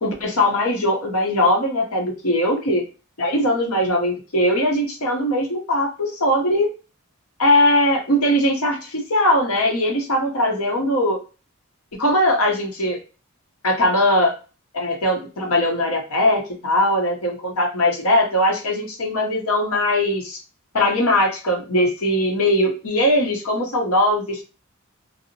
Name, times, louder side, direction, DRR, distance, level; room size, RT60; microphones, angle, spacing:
voice 1, 0.0-2.8 3.2-6.7 7.4-11.2 12.0-13.0 13.6-14.3 14.7-20.4 20.7-24.4, left 1 dB, 90° left, 1 dB, 0.8 m, -20 dB
2.7 x 2.0 x 2.7 m, 0.35 s
head